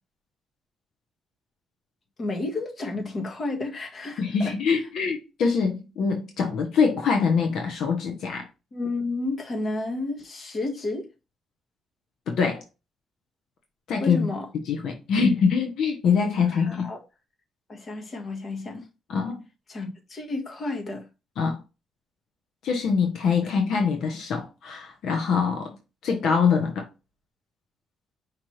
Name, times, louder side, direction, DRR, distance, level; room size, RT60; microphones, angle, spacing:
voice 1, 2.2-4.2 8.7-11.1 14.0-14.5 16.5-17.0 17.7-18.9 19.7-21.1, left 2 dB, 45° left, 1.3 m, -31 dB
voice 2, 4.2-8.5 12.3-12.6 13.9-14.3 14.7-16.9 19.1-19.4 21.4-21.6 22.6-25.8 26.0-26.9, left 5 dB, 75° left, 0.9 m, -24 dB
5.1 x 3.0 x 3.1 m
cardioid pair, 90°, 0 cm